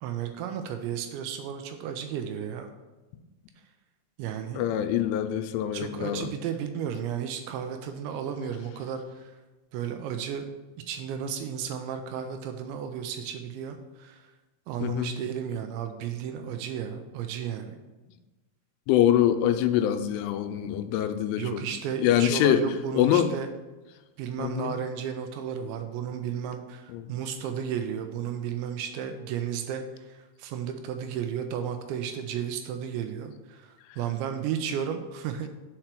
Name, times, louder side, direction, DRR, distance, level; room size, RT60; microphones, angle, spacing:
voice 1, 0.0-2.7 4.2-4.6 5.7-9.4 9.7-10.5 10.9-14.3 14.7-17.8 21.4-23.5 24.2-35.5, right 8 dB, 80° right, 6 dB, 2.7 m, -33 dB
voice 2, 4.5-6.3 14.8-15.1 18.9-21.6 22.0-22.6 22.9-23.3 24.4-24.7 26.9-27.1, left 11 dB, 85° left, 9 dB, 3.0 m, -24 dB
7.8 x 4.4 x 5.9 m, 1.2 s
omnidirectional pair, 5.5 m